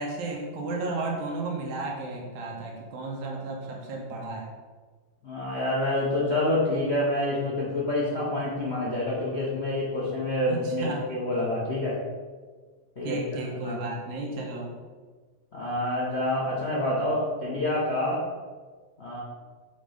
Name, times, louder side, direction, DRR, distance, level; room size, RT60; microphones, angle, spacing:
voice 1, 0.0-4.5 10.5-11.1 13.0-14.7, right 2 dB, 75° right, -1 dB, 2.3 m, -33 dB
voice 2, 5.2-12.0 13.0-13.8 15.5-18.2 19.0-19.2, left 1 dB, 80° left, -6 dB, 0.5 m, -27 dB
7.0 x 3.2 x 5.0 m, 1.5 s
omnidirectional pair, 3.3 m